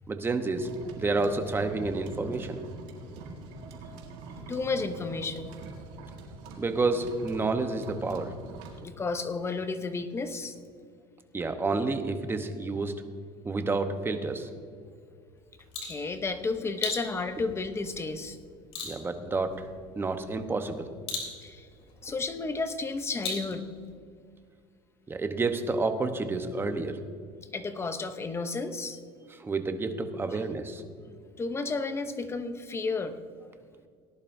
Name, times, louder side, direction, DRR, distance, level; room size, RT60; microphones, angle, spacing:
voice 1, 0.1-0.7 1.0-2.7 6.6-8.3 11.3-12.9 13.4-14.5 18.8-19.7 20.0-20.9 25.1-27.0 29.3-30.8, right 3 dB, 20° right, 7 dB, 1.0 m, -29 dB
sound 1, 0.5-8.8, right 3 dB, 80° right, 1.9 m, -44 dB
voice 2, 4.5-5.6 8.8-10.5 15.8-18.4 21.4-21.7 22.0-23.7 27.5-29.0 30.3-30.4 31.1-33.2, left 3 dB, 20° left, 9 dB, 0.8 m, -32 dB
sound 2, 15.4-24.0, left 3 dB, 50° left, 3.4 m, -41 dB
18.5 x 11.0 x 2.7 m, 2.2 s
cardioid pair, 120°, 13 cm